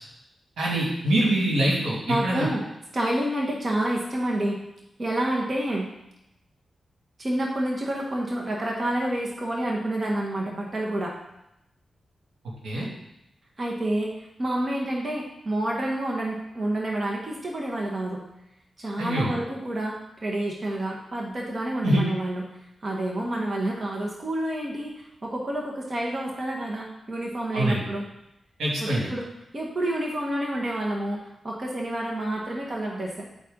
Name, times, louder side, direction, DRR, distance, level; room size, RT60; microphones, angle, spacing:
voice 1, 0.6-2.5 12.6-12.9 19.0-19.3 21.8-22.0 27.5-27.8 28.6-29.1, right 1 dB, 85° right, -5 dB, 2.5 m, -24 dB
voice 2, 2.1-2.6 2.9-4.6 5.0-5.9 7.2-11.2 13.6-18.2 18.8-22.4 22.8-28.0 28.8-29.3 29.5-31.2 31.4-33.3, right 1 dB, 40° right, -2 dB, 1.5 m, -28 dB
10.0 x 4.3 x 4.0 m, 0.85 s
cardioid pair, 50°, 0 cm